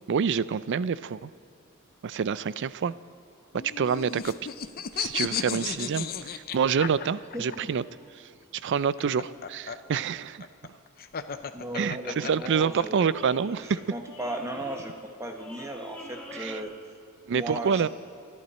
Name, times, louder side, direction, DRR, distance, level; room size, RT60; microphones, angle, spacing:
voice 1, 0.1-1.3 2.0-2.9 3.5-4.3 5.0-7.8 8.6-10.5 11.7-13.8 16.3-16.6 17.3-17.9, right 6 dB, 55° right, 18 dB, 0.4 m, -27 dB
sound 1, 3.5-7.6 8.8-13.0, left 7 dB, 45° left, 0.6 m, -34 dB
voice 2, 7.3-7.7 11.5-16.7 17.3-17.9, right 1 dB, 15° right, 4 dB, 1.3 m, -36 dB
sound 2, 7.7-8.5 9.0-10.3 11.2-11.5 12.1-12.7 13.0-16.6, left 1 dB, 5° left, 1.7 m, -48 dB
27.0 x 11.5 x 4.3 m, 2.4 s
head